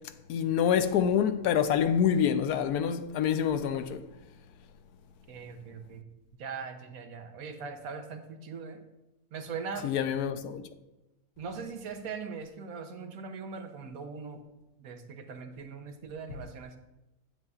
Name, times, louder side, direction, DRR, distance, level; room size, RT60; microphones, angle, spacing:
voice 1, 0.3-4.0 9.8-10.6, left 8 dB, 90° left, 1.1 m, -26 dB
voice 2, 5.3-6.1 6.4-8.8 9.3-9.9 11.4-14.4 14.8-16.8, right 5 dB, 70° right, 1.2 m, -40 dB
9.6 x 7.7 x 2.4 m
omnidirectional pair, 1.6 m